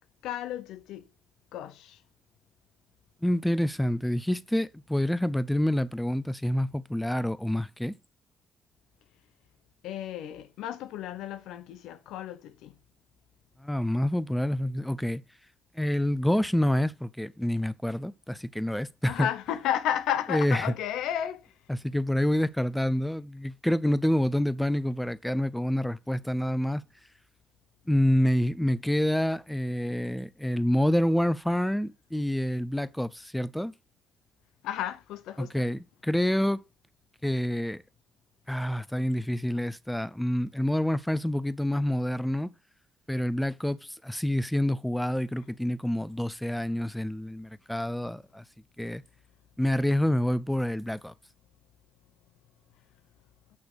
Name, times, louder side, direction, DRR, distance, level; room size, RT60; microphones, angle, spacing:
voice 1, 0.2-1.0 1.5-2.0 9.8-12.7 19.1-21.5 34.6-35.6, left 10 dB, 90° left, 0.7 m, -33 dB
voice 2, 3.2-7.9 13.6-15.2 15.8-19.3 20.3-20.7 21.7-26.8 27.9-33.7 35.4-36.6 37.2-37.8 38.5-42.5 43.1-48.4 48.8-49.0 49.6-51.1, left 1 dB, 5° left, 0.4 m, -27 dB
8.5 x 3.3 x 6.1 m
cardioid pair, 90°, 0 cm